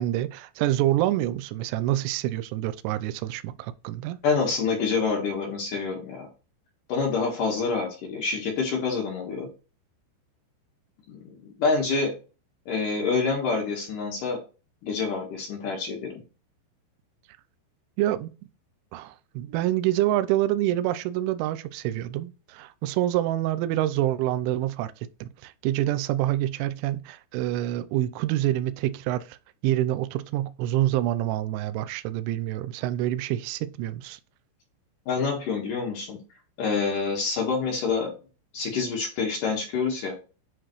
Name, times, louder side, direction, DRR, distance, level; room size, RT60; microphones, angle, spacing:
voice 1, 0.0-4.2 18.0-18.3 18.9-24.9 25.2-29.4 29.6-34.2, right 14 dB, 85° right, 2.8 m, -27 dB
voice 2, 4.2-6.3 6.9-9.5 11.1-12.1 12.7-14.4 14.8-16.2 35.1-36.2 36.6-38.1 38.5-40.2, left 4 dB, 70° left, 2.1 m, -27 dB
10.0 x 4.0 x 3.1 m
omnidirectional pair, 6.0 m